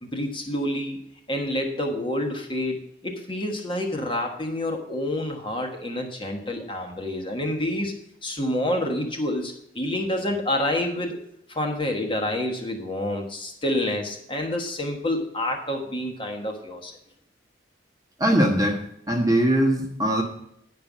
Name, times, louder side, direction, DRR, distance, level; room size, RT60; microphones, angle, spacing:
voice 1, 0.0-1.0 1.3-7.9 8.2-11.2 11.5-16.9, left 1 dB, 25° left, 2 dB, 1.3 m, -28 dB
voice 2, 18.2-18.8 19.1-20.2, right 1 dB, 20° right, 3 dB, 1.2 m, -21 dB
9.9 x 5.3 x 7.2 m, 0.75 s
head